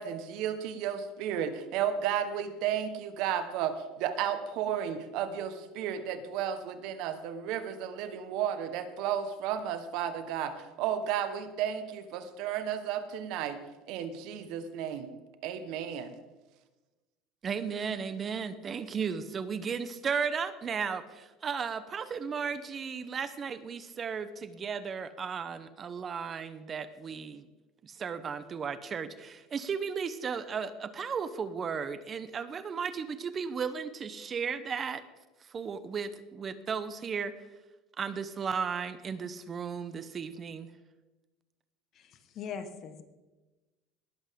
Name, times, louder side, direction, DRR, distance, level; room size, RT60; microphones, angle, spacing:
voice 1, 0.0-10.5 10.8-13.6 13.9-15.1 15.4-16.1, right 9 dB, 65° right, 10 dB, 1.2 m, -33 dB
voice 2, 17.4-27.5 27.8-35.0 35.5-37.3 38.0-40.7, right 6 dB, 35° right, 13 dB, 0.8 m, -35 dB
voice 3, 41.9-43.0, left 6 dB, 50° left, 9 dB, 1.3 m, -41 dB
19.0 x 8.1 x 3.7 m, 1.1 s
supercardioid pair, 110°, 0 cm